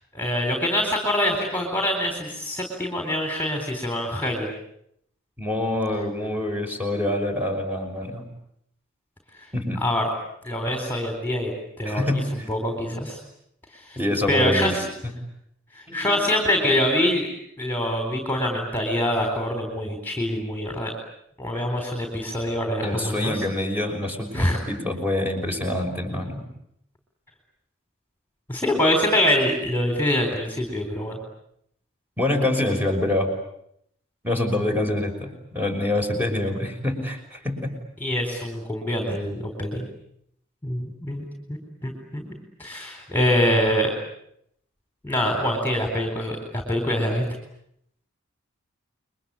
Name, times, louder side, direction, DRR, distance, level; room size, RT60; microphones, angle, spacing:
voice 1, 0.1-4.5 9.8-10.1 10.4-11.5 11.8-13.2 13.7-14.0 14.3-14.9 15.7-17.3 17.6-20.9 21.4-23.4 24.3-24.6 28.5-31.2 38.0-39.9 40.6-42.3 42.6-43.9 45.0-47.2, left 1 dB, 10° left, 4 dB, 4.1 m, -25 dB
voice 2, 5.4-8.2 9.5-9.8 10.7-10.8 11.8-12.5 14.0-15.1 15.9-16.2 16.5-16.7 22.8-26.4 32.2-33.3 34.2-37.8, left 1 dB, 10° right, 3 dB, 6.1 m, -26 dB
30.0 x 23.0 x 8.6 m, 0.74 s
head